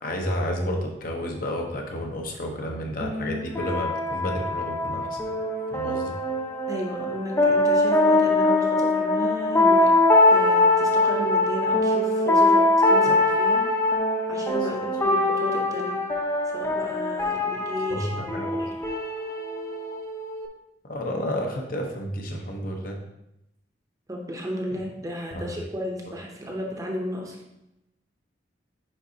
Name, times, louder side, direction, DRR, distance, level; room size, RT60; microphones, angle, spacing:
voice 1, 0.0-5.2 5.7-6.1 13.0-13.1 17.9-18.6 20.8-23.0 25.3-25.4, equal, 50° left, 2 dB, 1.0 m, -31 dB
sound 1, 3.0-20.5, left 2 dB, 15° left, 0.6 m, -22 dB
voice 2, 6.7-9.9 10.3-13.6 14.3-16.0 16.5-18.7 24.1-27.4, equal, 20° right, 0 dB, 0.8 m, -34 dB
9.9 x 4.0 x 2.8 m, 0.84 s
head